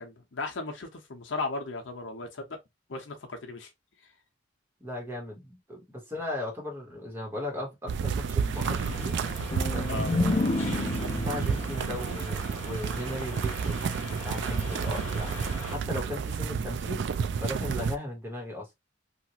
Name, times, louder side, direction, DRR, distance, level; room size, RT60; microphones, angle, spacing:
voice 1, 0.0-2.6 2.9-3.7 9.9-10.1, left 3 dB, 70° left, 0.8 m, -36 dB
voice 2, 4.8-9.2 9.7-13.8 14.2-17.0 17.4-18.7, left 1 dB, 10° right, 1.2 m, -37 dB
walking in the snow, 7.9-18.0, right 6 dB, 65° right, 0.3 m, -31 dB
sound 1, 8.5-15.8, left 1 dB, 10° left, 1.5 m, -41 dB
sound 2, 9.5-13.2, left 3 dB, 35° left, 0.5 m, -31 dB
3.0 x 2.5 x 2.8 m
head